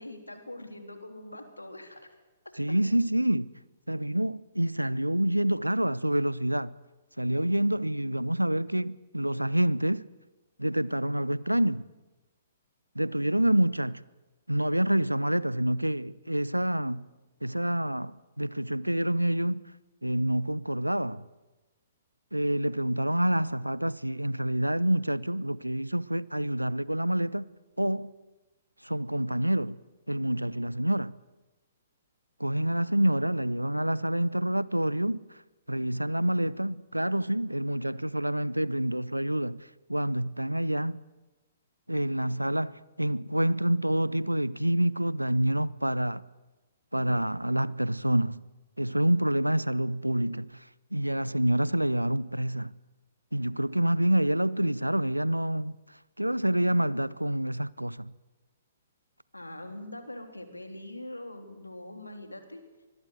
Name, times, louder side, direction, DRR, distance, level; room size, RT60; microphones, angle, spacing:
voice 1, 0.0-2.0 2.7-2.8 59.3-62.6, left 1 dB, 80° left, 3.5 m, -43 dB
voice 2, 2.6-3.5 3.9-6.7 7.2-10.1 10.6-11.9 13.0-14.0 14.5-17.0 17.4-19.6 20.0-21.2 22.3-27.4 27.8-28.1 28.8-29.8 30.1-31.2 32.4-35.2 35.7-41.0 41.9-46.2 46.9-48.4 48.8-50.6 50.9-52.7 53.3-55.8 56.2-58.1, right 1 dB, 85° right, 0.7 m, -27 dB
25.0 x 21.0 x 7.9 m
figure-of-eight pair, 120°, 0 cm